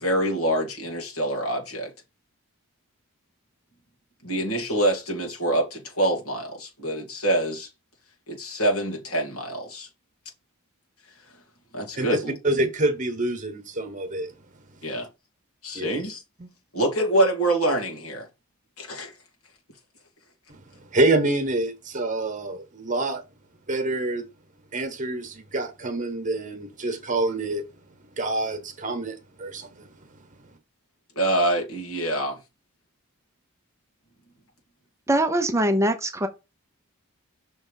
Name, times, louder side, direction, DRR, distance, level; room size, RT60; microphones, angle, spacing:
voice 1, 0.0-1.9 4.2-7.7 8.3-9.9 11.7-12.4 14.8-15.1 15.6-16.2 16.7-18.3 18.8-19.1 31.2-32.4, right 1 dB, 85° left, 2.5 m, -25 dB
voice 2, 12.4-14.3 15.7-15.9 16.4-16.5 20.9-23.2 23.7-24.2 24.7-27.6 28.2-29.9, right 2 dB, 35° right, 1.2 m, -26 dB
voice 3, 35.1-36.3, right 1 dB, 15° right, 0.6 m, -22 dB
6.1 x 3.4 x 5.7 m
head